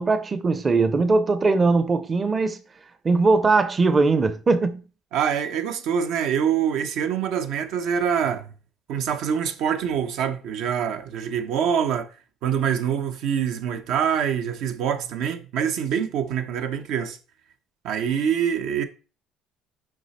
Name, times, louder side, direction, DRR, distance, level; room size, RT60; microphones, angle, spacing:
voice 1, 0.0-2.6 3.0-4.8, right 3 dB, 25° right, 0.7 m, -20 dB
voice 2, 5.1-8.5 8.9-12.1 12.4-17.2 17.8-18.8, right 8 dB, 75° right, 1.0 m, -25 dB
6.4 x 5.0 x 4.2 m
cardioid pair, 100°, 0 cm